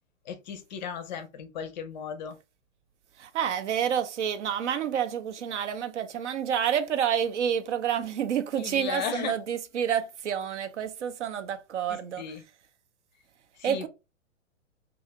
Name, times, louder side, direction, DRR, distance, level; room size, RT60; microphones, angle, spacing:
voice 1, 0.3-2.4 8.5-9.3 11.9-12.4 13.6-13.9, left 7 dB, 35° left, 0.5 m, -36 dB
voice 2, 3.2-12.2 13.6-13.9, right 9 dB, 65° right, 0.6 m, -29 dB
2.5 x 2.4 x 2.8 m
hypercardioid pair, 120°, 38 cm